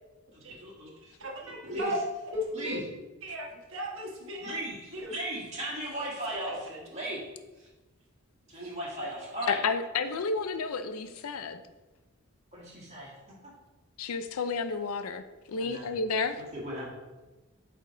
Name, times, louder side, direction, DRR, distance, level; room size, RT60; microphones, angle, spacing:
voice 1, 0.3-1.1 1.4-1.9 2.5-2.8 4.4-7.2 7.6-7.7 8.5-9.6 12.5-13.1 15.5-15.9 16.5-16.9, right 1 dB, 30° right, -6 dB, 2.0 m, -37 dB
voice 2, 1.2-2.0 2.3-2.8 3.2-4.6 4.9-5.1 6.0-6.8 8.6-8.7, equal, 60° right, -2 dB, 1.3 m, -36 dB
voice 3, 9.5-11.6 14.0-16.4, left 4 dB, 80° left, 10 dB, 0.5 m, -31 dB
8.3 x 3.4 x 3.8 m, 1.1 s
head